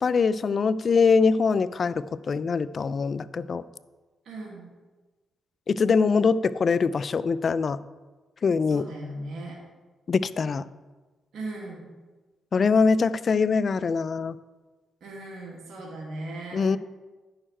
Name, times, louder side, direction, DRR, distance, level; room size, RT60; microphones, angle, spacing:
voice 1, 0.0-3.6 5.7-7.8 8.4-8.9 10.1-10.6 12.5-14.4 16.5-16.8, left 5 dB, 50° left, 16 dB, 0.4 m, -23 dB
voice 2, 4.3-4.7 8.7-9.6 11.3-11.9 15.0-16.6, right 2 dB, 70° right, -2 dB, 1.8 m, -38 dB
9.9 x 6.5 x 4.5 m, 1.3 s
cardioid pair, 65°, 0 cm